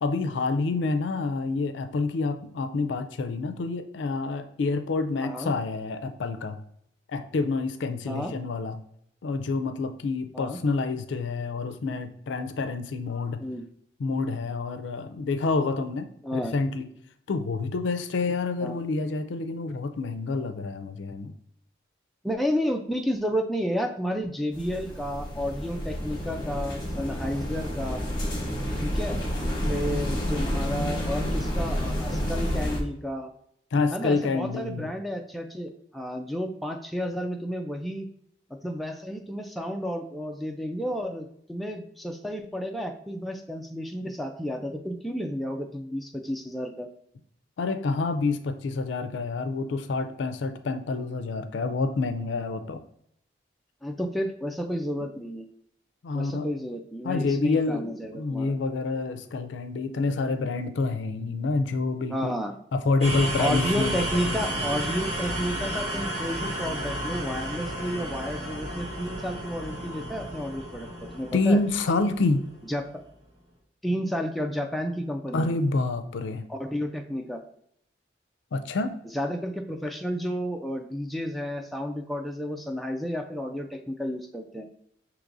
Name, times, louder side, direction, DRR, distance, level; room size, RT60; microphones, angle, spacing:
voice 1, 0.0-6.6 7.1-8.8 9.2-13.4 14.0-16.9 17.3-21.3 33.7-34.8 47.6-52.8 56.0-56.5 57.0-62.3 62.7-64.2 71.3-72.4 75.3-76.4 78.5-78.9, left 3 dB, 80° left, 9 dB, 0.4 m, -28 dB
voice 2, 5.2-5.5 8.1-8.3 10.3-10.6 13.4-13.7 16.2-16.6 18.6-18.8 22.2-28.0 28.8-29.2 29.7-33.3 33.9-38.1 38.5-46.9 53.8-55.5 56.1-58.5 62.1-62.5 63.4-71.6 72.6-72.8 73.8-75.5 76.5-77.4 79.0-84.7, equal, ahead, 2 dB, 0.3 m, -31 dB
sound 1, 24.5-32.8, equal, 25° left, 1.1 m, -29 dB
sound 2, 63.0-72.8, equal, 35° right, 1.3 m, -32 dB
6.0 x 2.9 x 2.5 m, 0.70 s
head